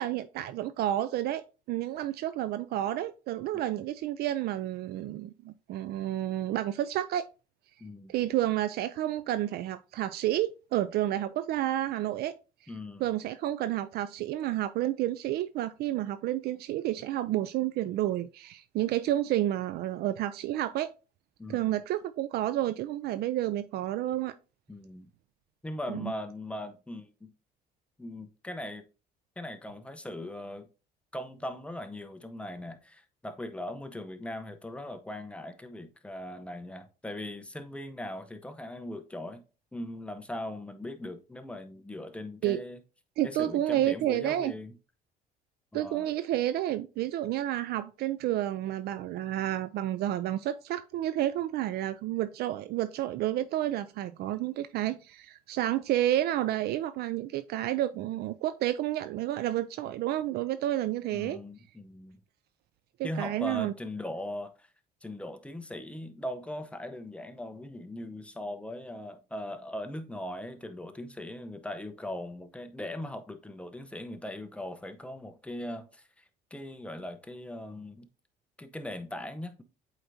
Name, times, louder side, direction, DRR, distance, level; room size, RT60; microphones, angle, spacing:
voice 1, 0.0-7.2 8.1-12.3 13.0-20.9 21.5-24.3 25.9-26.1 42.4-42.6 43.2-44.5 45.7-61.4 63.0-63.7, right 13 dB, 70° right, 0.4 m, -30 dB
voice 2, 7.8-8.1 12.7-13.0 21.4-21.7 24.7-25.1 25.6-27.3 28.0-28.8 29.4-30.7 31.1-39.4 39.7-42.8 43.2-44.8 45.7-46.1 61.1-62.2 63.0-64.7 65.0-78.1 78.6-79.6, left 1 dB, 5° left, 0.8 m, -39 dB
8.0 x 4.5 x 2.6 m
cardioid pair, 110°, 17 cm